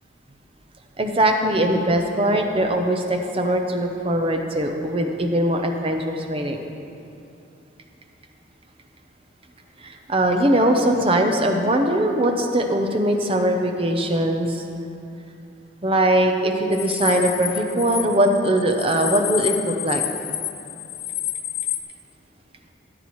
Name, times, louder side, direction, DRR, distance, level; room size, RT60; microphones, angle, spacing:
voice 1, 1.0-6.6 9.8-14.6 15.8-20.0, right 1 dB, 30° right, 4 dB, 0.6 m, -21 dB
sound 1, 16.7-21.8, left 12 dB, 85° left, 0.6 m, -29 dB
13.5 x 8.7 x 3.1 m, 2.7 s
head